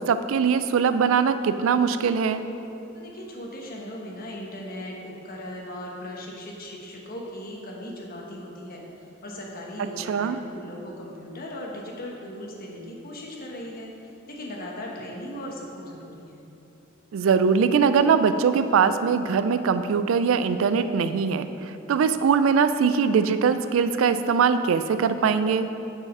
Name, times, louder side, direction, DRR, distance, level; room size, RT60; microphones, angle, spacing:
voice 1, 0.1-2.4 10.1-10.4 17.1-25.7, right 6 dB, 80° right, 11 dB, 0.3 m, -22 dB
voice 2, 2.9-13.9 14.3-16.4, left 1 dB, 50° left, -1 dB, 1.1 m, -38 dB
6.6 x 4.9 x 5.3 m, 2.9 s
head